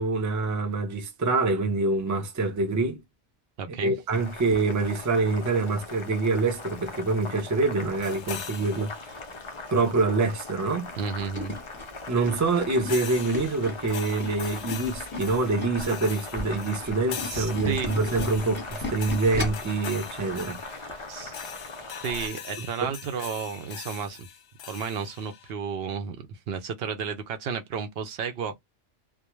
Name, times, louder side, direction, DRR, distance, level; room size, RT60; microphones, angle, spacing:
voice 1, 0.0-3.0 3.8-9.2 9.7-10.9 12.1-21.0 22.8-22.9, right 3 dB, 25° right, 0.4 m, -26 dB
voice 2, 3.6-3.9 11.0-11.6 17.3-17.9 21.1-21.4 22.0-24.3 24.7-28.6, right 6 dB, 65° right, 0.7 m, -32 dB
Boiling, 4.1-22.3, left 3 dB, 45° left, 0.4 m, -40 dB
sound 1, 8.0-9.6 12.9-25.5, left 8 dB, 85° left, 0.9 m, -42 dB
Tools, 10.9-15.9 16.2-19.7 20.2-20.3 20.6-20.7, left 2 dB, 10° left, 0.8 m, -36 dB
2.3 x 2.2 x 2.9 m
omnidirectional pair, 1.2 m